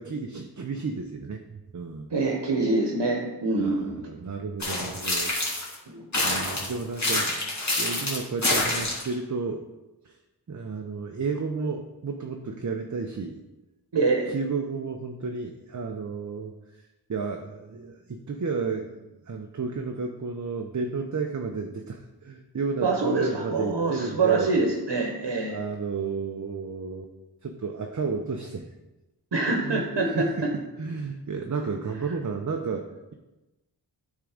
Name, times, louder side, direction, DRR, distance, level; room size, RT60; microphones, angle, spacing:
voice 1, 0.0-2.1 3.6-5.3 5.6-5.7 6.2-7.3 7.8-9.6 10.0-10.2 10.5-13.4 14.3-16.5 17.1-24.5 25.5-27.1 27.4-28.6 29.6-33.1, right 4 dB, 45° right, 3 dB, 0.7 m, -32 dB
voice 2, 2.1-4.0 5.9-6.1 13.9-14.3 22.8-25.6 29.3-30.1 30.4-30.5, right 3 dB, 70° right, 1 dB, 1.1 m, -25 dB
sound 1, 4.6-5.7 6.1-9.1, left 2 dB, 40° left, 2.1 m, -27 dB
9.2 x 3.7 x 5.1 m, 1.1 s
cardioid pair, 45°, 43 cm